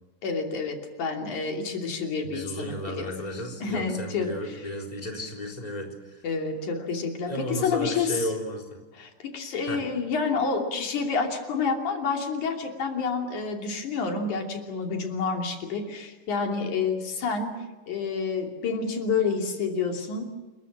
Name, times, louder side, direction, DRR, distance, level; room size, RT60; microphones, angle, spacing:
voice 1, 0.2-3.1 3.6-4.3 6.2-8.2 8.9-17.6 17.9-20.2, left 5 dB, 90° left, 3 dB, 4.3 m, -29 dB
voice 2, 2.2-6.3 7.3-8.8 9.6-9.8, left 1 dB, 15° left, 1 dB, 3.7 m, -34 dB
28.5 x 22.0 x 7.4 m, 1.2 s
omnidirectional pair, 3.3 m